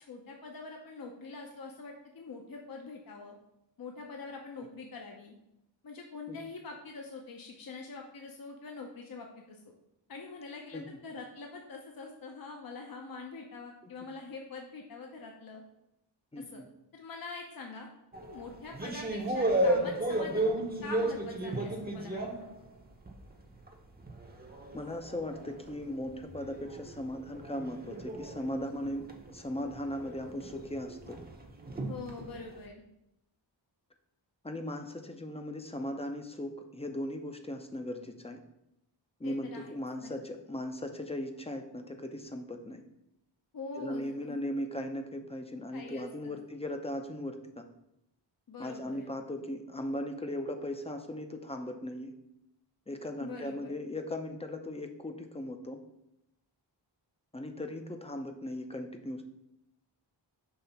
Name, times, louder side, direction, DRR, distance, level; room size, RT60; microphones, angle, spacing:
voice 1, 0.1-3.4 3.8-5.3 5.8-9.6 10.1-15.6 16.4-16.6 16.9-17.9 18.2-20.5 20.8-22.5 31.9-32.8 39.2-40.1 43.5-44.4 45.7-46.4 48.5-49.1 53.2-53.8, left 3 dB, 50° left, 1 dB, 0.7 m, -44 dB
voice 2, 16.3-16.6 24.7-31.2 34.4-38.4 39.2-42.8 43.8-47.6 48.6-52.1 52.9-55.8 57.3-59.2, left 1 dB, 15° left, 5 dB, 0.5 m, -38 dB
sound 1, 18.1-23.3 23.7-32.6, right 1 dB, 20° right, 0.8 m, -34 dB
5.6 x 3.2 x 5.7 m, 0.84 s
wide cardioid pair, 115°, 45 cm